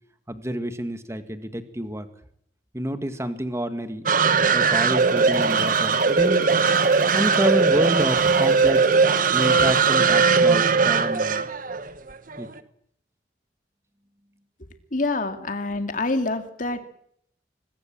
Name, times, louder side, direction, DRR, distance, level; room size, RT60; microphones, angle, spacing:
voice 1, 0.3-2.1 2.7-4.1 4.5-6.5 7.1-8.9 9.3-11.5 12.4-12.5, right 1 dB, 15° right, 9 dB, 1.9 m, -28 dB
sound 1, 4.1-12.5, right 5 dB, 50° right, 1.3 m, -19 dB
sound 2, 4.7-11.0, right 5 dB, 65° right, 2.1 m, -39 dB
voice 2, 14.9-16.8, left 2 dB, 45° left, 7 dB, 2.4 m, -26 dB
24.5 x 22.0 x 7.6 m, 0.69 s
head